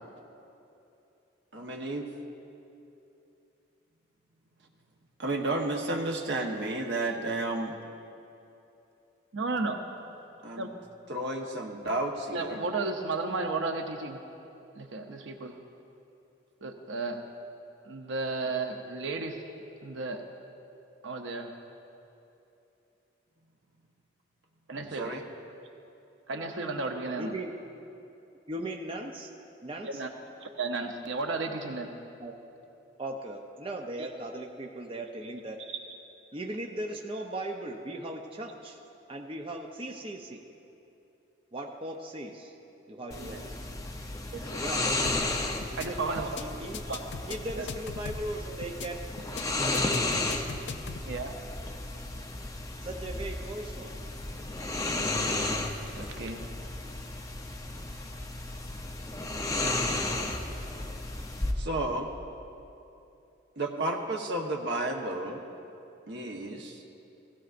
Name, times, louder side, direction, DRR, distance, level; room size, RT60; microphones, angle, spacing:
voice 1, 1.5-2.1 5.2-7.7 10.4-10.7 11.1-12.6 24.7-25.2 61.6-62.1 63.6-65.4 66.1-66.8, right 2 dB, 65° right, 2 dB, 1.1 m, -32 dB
voice 2, 9.3-9.8 10.6-10.7 12.3-14.2 14.7-15.6 16.6-17.2 17.8-19.4 19.8-20.2 21.0-21.6 24.7-25.1 26.3-27.3 29.8-30.1 30.4-31.9 43.1-43.4 44.3-44.6 45.8-46.3 46.9-47.0 47.5-47.7 51.0-51.3 55.9-56.5, right 3 dB, 80° right, 4 dB, 0.7 m, -33 dB
voice 3, 27.2-27.5 28.5-29.3 29.6-30.0 32.2-32.3 33.0-35.6 36.3-38.8 39.1-40.4 41.5-42.5 42.9-43.6 44.5-44.9 45.9-46.0 46.4-46.8 47.3-49.0 49.7-50.2 52.8-53.9, right 1 dB, 30° right, 2 dB, 0.6 m, -38 dB
sound 1, 43.1-61.5, left 2 dB, 20° left, 0.7 m, -33 dB
sound 2, 45.1-45.3 45.6-45.9 46.2-46.4 46.7-48.3 48.6-48.9 49.2-49.4 49.7-51.0, left 5 dB, 70° left, 0.4 m, -39 dB
16.5 x 16.0 x 2.6 m, 2.8 s
head